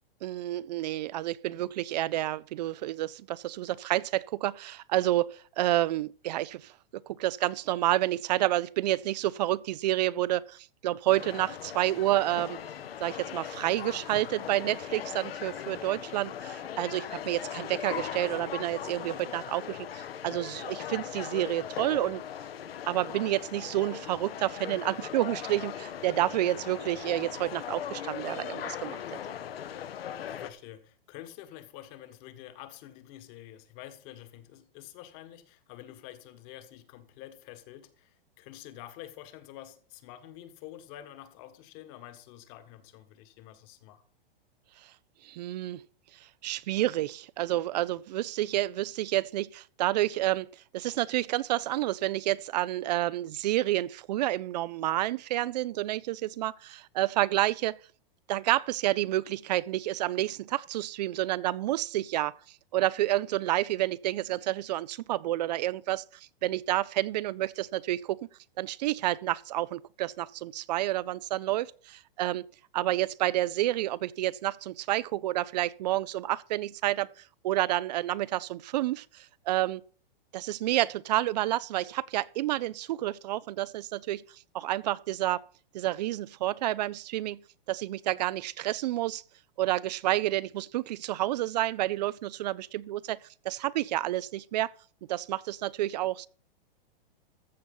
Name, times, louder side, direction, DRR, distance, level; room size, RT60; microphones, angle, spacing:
voice 1, 0.2-6.7 7.1-12.6 13.0-22.2 22.9-29.0 45.2-45.8 46.4-50.5 50.7-57.8 58.3-62.3 62.7-68.2 68.6-72.5 72.7-77.1 77.4-79.8 80.3-84.2 84.5-85.4 85.7-87.4 87.7-89.2 89.6-93.2 93.4-94.7 95.1-96.3, right 15 dB, 45° right, 0.4 m, -29 dB
sound 1, 11.1-30.5, left 9 dB, 80° left, 1.2 m, -39 dB
voice 2, 29.8-44.0, left 13 dB, 35° left, 1.5 m, -48 dB
14.5 x 6.8 x 5.3 m
hypercardioid pair, 145°, 29 cm